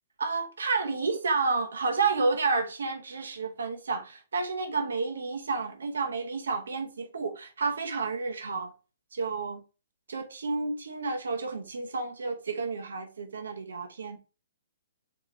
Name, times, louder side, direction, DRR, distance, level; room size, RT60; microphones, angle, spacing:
voice 1, 0.2-8.7 9.1-9.6 10.1-14.2, right 4 dB, 90° right, 0.9 m, -30 dB
4.9 x 2.9 x 3.0 m
hypercardioid pair, 165°, 0 cm